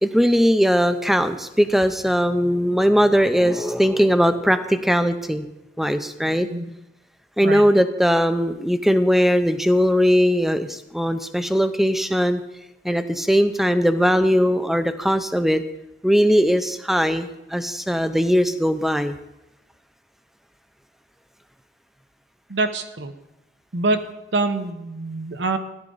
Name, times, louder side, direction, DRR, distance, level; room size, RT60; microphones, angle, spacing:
voice 1, 0.0-5.5 5.8-6.5 7.4-12.4 12.8-15.6 16.0-19.2, equal, ahead, 9 dB, 0.5 m, -19 dB
voice 2, 22.5-23.1 23.7-24.0 24.3-25.6, right 3 dB, 70° right, 8 dB, 1.0 m, -25 dB
14.0 x 11.0 x 3.9 m, 0.93 s
head